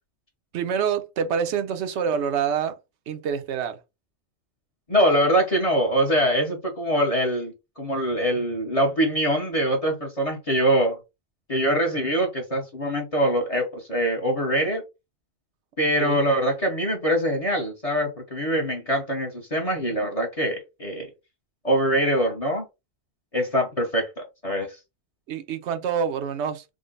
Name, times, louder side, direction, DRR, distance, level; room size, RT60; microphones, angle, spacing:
voice 1, 0.5-2.8 3.1-3.8 16.0-16.2 25.3-26.6, right 7 dB, 80° right, 1.0 m, -26 dB
voice 2, 4.9-11.0 11.5-14.8 15.8-21.1 21.6-22.6 23.3-24.8, equal, 35° left, 1.0 m, -23 dB
3.8 x 2.1 x 3.7 m
omnidirectional pair, 1.1 m